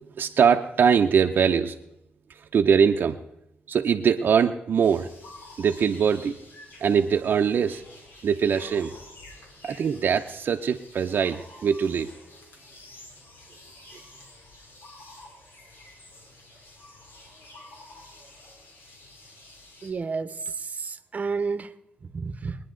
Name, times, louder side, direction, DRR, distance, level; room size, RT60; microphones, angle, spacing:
voice 1, 0.2-1.8 2.3-3.2 3.7-5.1 5.6-6.3 6.8-7.8 8.2-8.9 9.6-12.1, right 7 dB, 65° right, 4 dB, 0.6 m, -22 dB
sound 1, 4.8-19.9, left 2 dB, 75° left, 2.8 m, -49 dB
voice 2, 19.8-21.7 22.0-22.6, right 4 dB, 45° right, 12 dB, 0.8 m, -31 dB
22.0 x 10.0 x 3.8 m, 0.79 s
cardioid pair, 95°, 4 cm